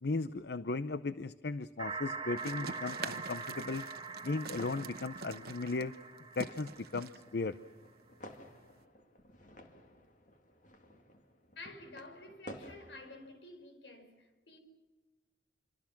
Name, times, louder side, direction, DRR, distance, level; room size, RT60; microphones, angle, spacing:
voice 1, 0.0-3.9 4.2-6.0 6.4-7.6, left 3 dB, 60° left, 0.7 m, -36 dB
sound 1, 1.8-7.5, right 4 dB, 25° right, 1.3 m, -43 dB
sound 2, 2.2-13.3, left 1 dB, 45° left, 2.6 m, -55 dB
sound 3, 2.4-8.8, right 4 dB, 55° right, 1.0 m, -46 dB
voice 2, 11.5-14.6, left 2 dB, 80° left, 5.1 m, -51 dB
28.0 x 25.0 x 6.0 m
head